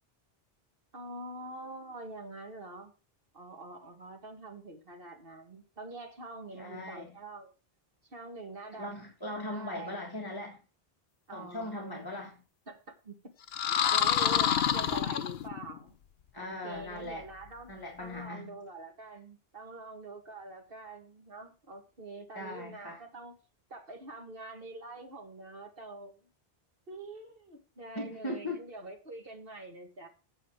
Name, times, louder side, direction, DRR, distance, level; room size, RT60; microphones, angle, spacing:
voice 1, 0.9-2.9 3.3-7.5 8.1-9.0 9.4-10.0 11.3-11.9 12.7-13.2 13.7-16.0 16.4-17.7 18.0-23.3 23.7-26.3 26.9-30.1, right 2 dB, 65° right, 2 dB, 2.1 m, -45 dB
voice 2, 6.5-7.1 8.8-10.6 11.3-12.3 16.3-17.3 17.7-18.5 22.3-23.0 27.9-28.6, left 1 dB, 20° left, -1 dB, 1.6 m, -39 dB
sound 1, 13.5-15.8, left 9 dB, 75° left, 0.9 m, -27 dB
8.8 x 5.0 x 7.4 m, 0.34 s
omnidirectional pair, 1.0 m